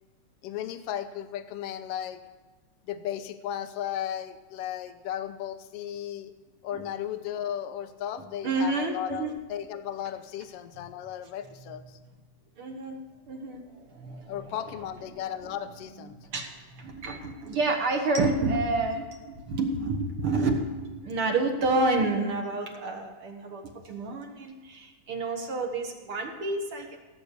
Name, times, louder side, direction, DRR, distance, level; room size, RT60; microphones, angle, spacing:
voice 1, 0.4-2.2 2.9-6.3 6.6-11.8 14.3-16.1, left 10 dB, 70° left, 10 dB, 1.5 m, -35 dB
voice 2, 8.4-9.3 12.6-13.0 13.3-27.0, right 3 dB, 50° right, 3 dB, 2.1 m, -30 dB
17.0 x 8.4 x 6.8 m, 1.4 s
omnidirectional pair, 3.5 m